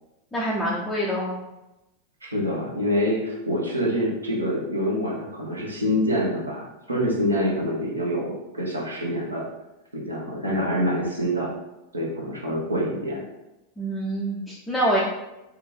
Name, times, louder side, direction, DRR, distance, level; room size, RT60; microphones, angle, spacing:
voice 1, 0.3-1.4 13.8-15.0, right 1 dB, 10° left, -6 dB, 0.6 m, -25 dB
voice 2, 2.2-9.5 9.9-11.5 11.9-13.2, equal, 80° right, -3 dB, 0.9 m, -26 dB
3.4 x 2.5 x 3.2 m, 0.96 s
figure-of-eight pair, 90°, 0 cm